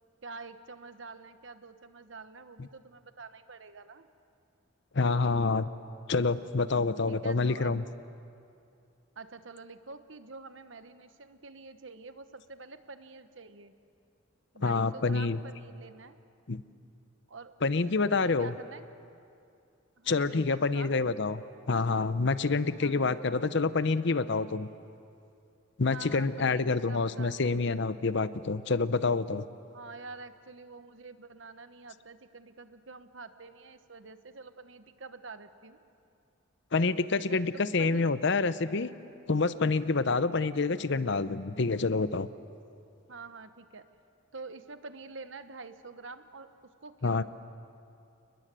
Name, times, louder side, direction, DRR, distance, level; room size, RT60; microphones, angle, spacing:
voice 1, 0.2-4.1 7.1-7.8 9.1-13.7 14.5-16.2 17.3-17.7 18.3-18.8 20.0-20.9 22.8-23.0 25.9-27.4 29.7-35.8 37.2-38.1 43.1-43.9 44.3-47.2, right 4 dB, 70° right, 10 dB, 1.2 m, -47 dB
voice 2, 4.9-5.7 6.1-7.8 14.6-15.4 16.5-16.6 17.6-18.5 20.1-21.4 21.7-24.7 25.8-29.5 36.7-38.9 39.3-42.3 47.0-47.2, left 4 dB, 60° left, 14 dB, 0.8 m, -27 dB
29.0 x 21.0 x 7.7 m, 2.5 s
head